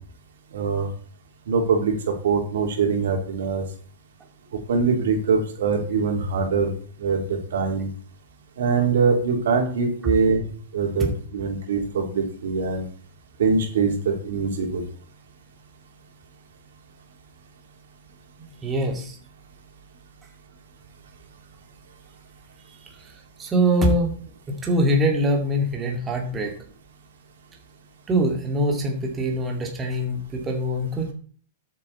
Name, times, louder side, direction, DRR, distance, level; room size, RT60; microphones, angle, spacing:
voice 1, 0.5-0.9 1.5-1.9 2.2-3.6 4.7-6.7 7.0-7.2 7.5-7.9 8.6-10.4 10.7-12.8 13.4-14.8, right 5 dB, 85° right, 2 dB, 3.4 m, -23 dB
voice 2, 18.4-19.2 23.0-23.1 23.4-24.1 24.6-26.5 28.1-31.1, right 1 dB, 15° right, 1 dB, 2.2 m, -23 dB
12.5 x 7.4 x 4.2 m, 0.43 s
hypercardioid pair, 150°, 0 cm